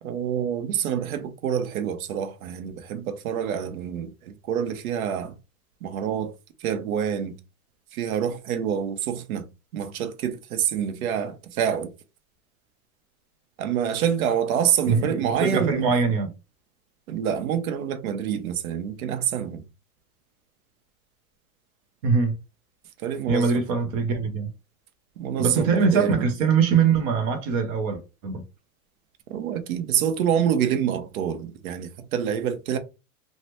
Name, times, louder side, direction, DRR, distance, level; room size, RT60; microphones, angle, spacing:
voice 1, 0.0-5.4 5.8-6.3 6.6-7.4 7.9-9.5 9.7-11.9 13.6-15.9 17.1-19.6 23.0-23.6 25.2-26.2 29.3-32.8, right 9 dB, 75° right, 0.7 m, -27 dB
voice 2, 14.9-16.3 22.0-22.3 23.3-24.5 25.4-28.4, right 5 dB, 25° right, 0.4 m, -22 dB
3.2 x 2.1 x 2.9 m
supercardioid pair, 160°, 43 cm